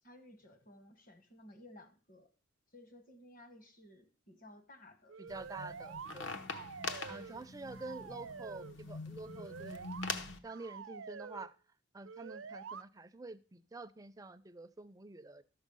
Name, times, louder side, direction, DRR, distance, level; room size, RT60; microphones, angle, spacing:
voice 1, 0.0-2.3 2.7-5.2 6.3-6.5 7.1-7.5, left 1 dB, 45° left, 9 dB, 1.3 m, -57 dB
sound 1, 5.1-6.2 6.5-7.4 7.7-8.8 9.2-10.0 10.5-11.5 12.0-12.8, right 6 dB, 75° right, 0.5 m, -47 dB
voice 2, 5.2-6.3 7.1-9.9 10.4-11.5 11.9-15.4, right 3 dB, 15° right, 11 dB, 0.4 m, -48 dB
sound 2, 5.3-10.4, left 4 dB, 60° left, 0.9 m, -43 dB
13.0 x 6.3 x 5.4 m, 0.39 s
head